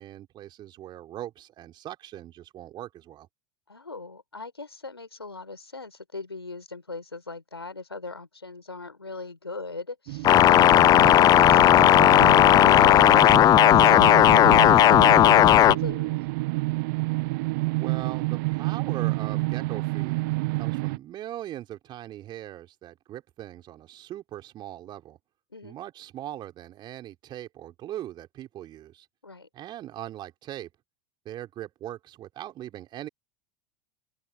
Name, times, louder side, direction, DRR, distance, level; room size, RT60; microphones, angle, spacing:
voice 1, 0.0-3.3 10.6-11.2 17.6-20.1 20.6-25.2 25.6-29.1 29.5-30.7 31.2-33.1, right 13 dB, 35° right, 4.0 m, -40 dB
voice 2, 3.7-10.6 10.9-16.2 25.5-25.8 29.2-29.5, left 3 dB, 90° left, 4.7 m, -39 dB
sound 1, 10.1-21.0, right 23 dB, 55° right, 0.6 m, -29 dB
sound 2, 10.2-15.7, left 12 dB, 30° left, 0.5 m, -15 dB
open air
figure-of-eight pair, 85°, 13 cm